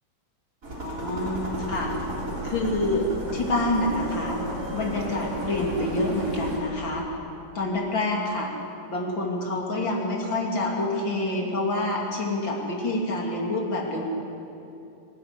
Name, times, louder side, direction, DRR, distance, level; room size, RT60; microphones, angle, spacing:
sound 1, 0.6-6.6, equal, 40° right, 4.2 m, -33 dB
voice 1, 0.8-1.9 2.4-4.4 4.7-7.1 7.6-8.5 8.9-14.0, left 2 dB, 60° left, -1 dB, 3.6 m, -27 dB
24.5 x 12.5 x 9.7 m, 2.8 s
omnidirectional pair, 2.4 m